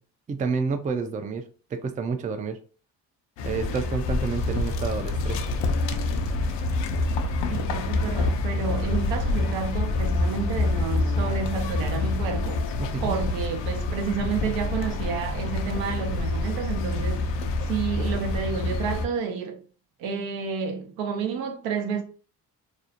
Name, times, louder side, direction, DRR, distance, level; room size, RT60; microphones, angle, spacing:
voice 1, 0.3-2.6 3.4-5.4 12.8-13.1, right 5 dB, 20° right, 0.3 m, -29 dB
sound 1, 3.4-19.1, left 2 dB, 70° left, 0.6 m, -27 dB
voice 2, 7.5-12.6 13.0-17.4 17.7-19.6 20.0-22.0, right 5 dB, 80° right, 0.6 m, -30 dB
2.5 x 2.0 x 2.7 m
supercardioid pair, 50°, 46 cm